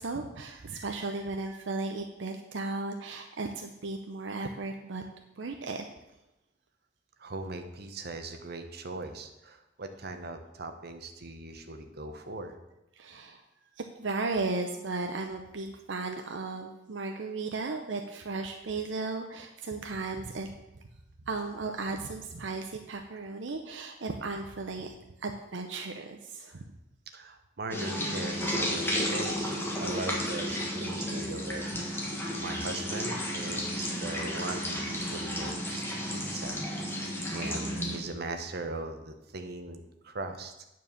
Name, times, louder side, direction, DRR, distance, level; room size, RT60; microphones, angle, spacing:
voice 1, 0.0-5.0 5.4-5.9 13.0-13.4 14.0-20.5 21.3-24.9 25.2-26.7, right 3 dB, 75° right, 4 dB, 0.7 m, -35 dB
voice 2, 7.2-12.5 27.1-36.6 36.9-37.0 37.3-40.6, right 2 dB, 55° right, 6 dB, 1.0 m, -40 dB
sound 1, 27.7-38.0, equal, 15° left, 1.6 m, -33 dB
9.3 x 4.7 x 7.1 m, 0.92 s
head